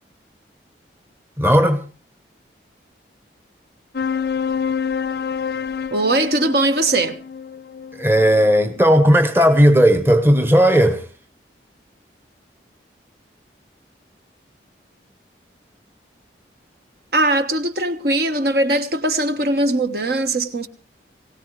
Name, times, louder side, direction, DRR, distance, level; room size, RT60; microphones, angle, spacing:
voice 1, 1.4-1.8 8.0-11.1, equal, 15° right, 1.0 m, -15 dB
sound 1, 3.9-8.8, left 6 dB, 60° left, 0.7 m, -27 dB
voice 2, 5.9-7.2 17.1-20.7, right 2 dB, 60° right, 1.4 m, -20 dB
20.5 x 18.0 x 3.2 m
head